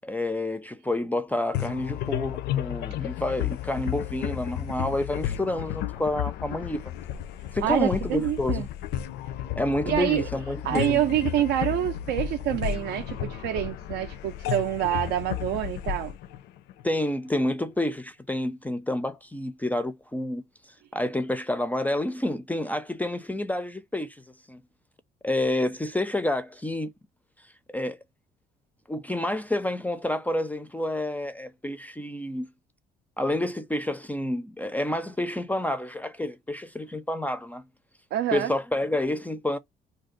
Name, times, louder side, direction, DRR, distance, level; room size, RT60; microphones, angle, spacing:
voice 1, 0.0-6.9 7.5-8.7 9.6-11.0 16.8-20.4 20.9-24.2 24.5-24.6 25.2-26.9 27.7-28.0 28.9-32.5 33.2-37.6 38.3-39.6, left 1 dB, 10° left, 0.4 m, -29 dB
sound 1, 1.5-17.2, left 12 dB, 75° left, 0.4 m, -33 dB
voice 2, 7.6-8.7 9.9-10.2 10.6-16.1 38.1-38.5, right 12 dB, 80° right, 0.5 m, -26 dB
2.6 x 2.3 x 3.7 m
cardioid pair, 110°, 17 cm